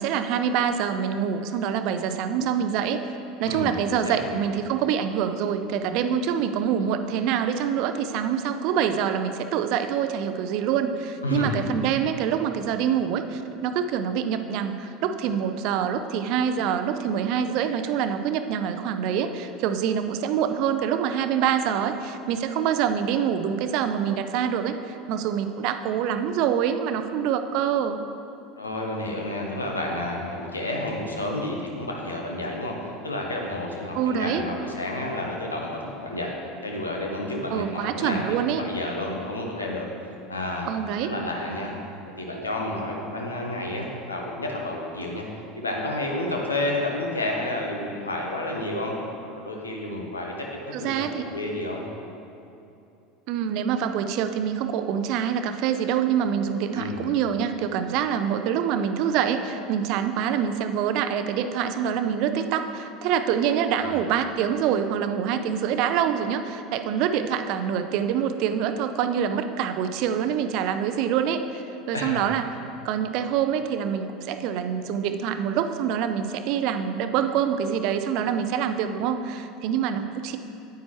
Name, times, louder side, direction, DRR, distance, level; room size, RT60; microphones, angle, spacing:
voice 1, 0.0-3.0 3.4-28.0 33.9-34.4 37.5-38.6 40.7-41.1 50.7-51.2 53.3-72.4 72.8-80.4, right 8 dB, 55° right, 9 dB, 0.5 m, -25 dB
voice 2, 11.2-11.6 28.6-36.3 36.6-40.7 41.0-41.8 42.1-45.3 45.5-48.9 49.3-50.5 50.8-51.8 56.7-57.0 63.7-64.0 71.9-72.2, left 1 dB, 85° left, 0 dB, 1.0 m, -30 dB
9.3 x 9.2 x 3.1 m, 2.8 s
figure-of-eight pair, 75°, 0 cm